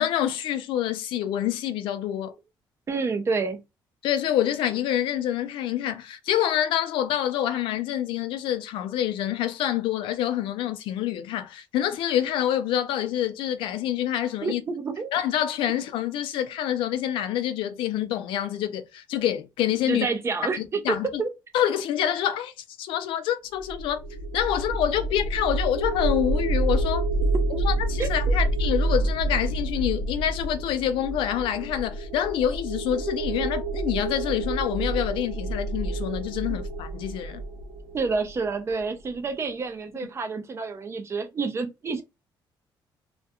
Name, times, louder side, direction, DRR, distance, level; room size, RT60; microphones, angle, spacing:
voice 1, 0.0-2.3 4.0-14.6 15.1-20.1 20.6-21.2 21.5-24.0 24.3-27.1 27.6-37.4, left 11 dB, 85° left, 0.4 m, -27 dB
voice 2, 2.9-3.6 14.4-15.1 19.9-21.3 27.5-27.6 28.0-28.1 37.9-42.0, right 4 dB, 30° right, 0.6 m, -28 dB
sound 1, 23.6-38.7, right 2 dB, 80° right, 0.5 m, -28 dB
2.4 x 2.1 x 2.8 m
cardioid pair, 115°, 9 cm